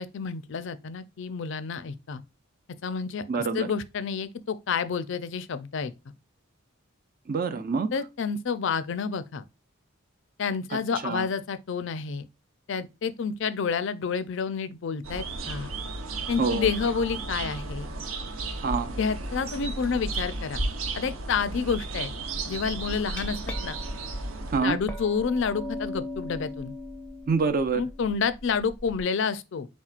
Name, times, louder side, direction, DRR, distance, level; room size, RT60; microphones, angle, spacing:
voice 1, 0.0-2.2 2.8-5.9 7.9-9.4 10.4-12.3 12.7-15.7 16.3-17.9 19.0-20.6 20.9-22.1 22.5-23.8 24.6-26.7 27.8-29.7, left 5 dB, 60° left, 0.4 m, -29 dB
voice 2, 3.3-3.7 7.3-7.9 10.7-11.2 16.4-16.7 18.6-19.0 24.5-24.8 27.3-27.8, right 4 dB, 45° right, 0.4 m, -26 dB
sound 1, 15.0-24.6, right 2 dB, 80° right, 0.7 m, -34 dB
Glass, 22.9-29.0, left 1 dB, 5° left, 0.5 m, -39 dB
4.4 x 4.3 x 2.4 m
head